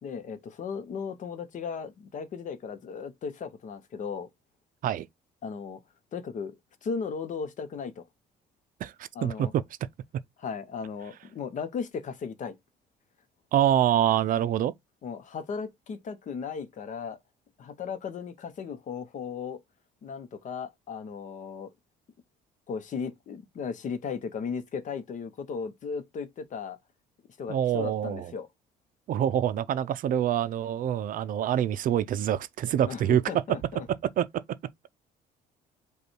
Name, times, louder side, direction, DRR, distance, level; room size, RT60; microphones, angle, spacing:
voice 1, 0.0-4.3 5.4-5.8 6.1-6.6 6.8-8.0 9.1-9.5 10.4-12.6 15.0-17.2 17.6-19.6 20.0-21.7 22.7-26.8 27.4-28.5 32.7-33.9, left 6 dB, 45° left, 0.8 m, -36 dB
voice 2, 9.2-9.6 13.5-14.7 27.5-28.3 29.1-33.2 34.2-34.3, right 10 dB, 55° right, 0.4 m, -25 dB
5.2 x 2.3 x 4.4 m
cardioid pair, 110°, 17 cm